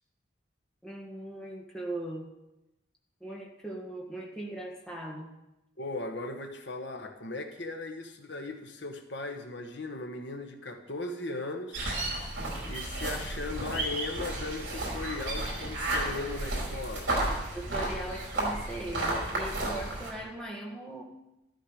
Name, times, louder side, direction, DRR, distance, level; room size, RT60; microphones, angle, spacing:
voice 1, 0.8-2.3 3.2-5.3 17.5-21.0, right 1 dB, 5° left, -2 dB, 1.7 m, -39 dB
voice 2, 5.8-11.8 12.7-17.1, left 2 dB, 65° left, 5 dB, 1.3 m, -37 dB
sound 1, 11.7-20.1, right 1 dB, 65° right, 4.9 m, -33 dB
13.5 x 13.5 x 5.0 m, 0.93 s
head